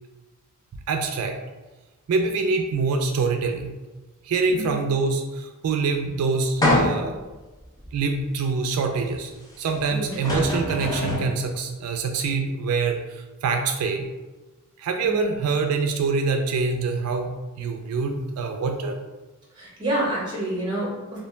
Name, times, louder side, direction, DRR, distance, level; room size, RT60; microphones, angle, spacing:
voice 1, 0.9-1.3 2.1-3.8 4.2-7.1 7.9-9.3 9.6-14.1 14.8-17.3 17.6-19.0, right 4 dB, 90° right, 7 dB, 0.3 m, -25 dB
voice 2, 4.5-4.8 9.9-10.2 15.0-15.3 19.5-21.2, right 1 dB, 20° right, -6 dB, 0.9 m, -28 dB
sound 1, 6.6-7.2 7.8-7.9 9.8-9.9 10.1-11.3, left 1 dB, 20° left, 0.6 m, -23 dB
2.2 x 2.1 x 3.1 m, 1.2 s
head